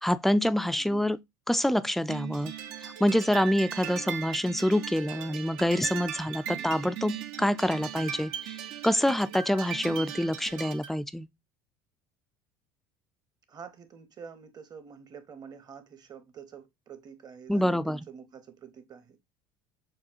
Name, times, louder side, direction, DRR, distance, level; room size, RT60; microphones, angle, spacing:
voice 1, 0.0-1.2 1.5-2.5 2.8-8.5 8.8-11.3 17.5-18.0, equal, ahead, 0.3 m, -26 dB
voice 2, 0.7-1.1 3.9-4.2 6.5-6.8 13.5-19.2, right 6 dB, 40° right, 1.0 m, -47 dB
sound 1, 2.1-11.0, right 9 dB, 75° right, 0.8 m, -38 dB
6.5 x 2.3 x 2.8 m
hypercardioid pair, 80°, 10 cm